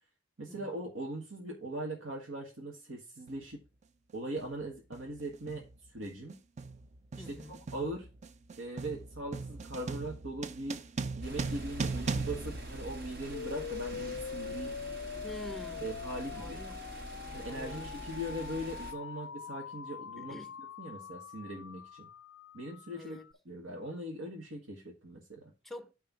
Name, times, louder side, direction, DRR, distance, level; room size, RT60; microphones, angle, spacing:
voice 1, 0.4-3.6 4.1-5.7 5.9-6.4 7.1-8.1 8.6-10.8 11.2-14.8 15.8-16.6 17.3-20.3 20.8-22.1 22.5-23.2 23.4-25.5, right 1 dB, 80° right, 1.6 m, -40 dB
sound 1, 3.3-3.5 4.4-4.6 4.9-13.5, right 4 dB, 35° right, 0.5 m, -39 dB
voice 2, 7.2-7.6 15.2-15.9 16.2-16.9 17.5-17.9 20.2-20.6 22.9-23.3 25.6-25.9, left 1 dB, ahead, 0.8 m, -47 dB
sound 2, 11.2-18.9, right 1 dB, 55° right, 1.8 m, -45 dB
sound 3, 13.3-23.3, left 6 dB, 65° left, 0.4 m, -43 dB
9.1 x 3.4 x 6.0 m
head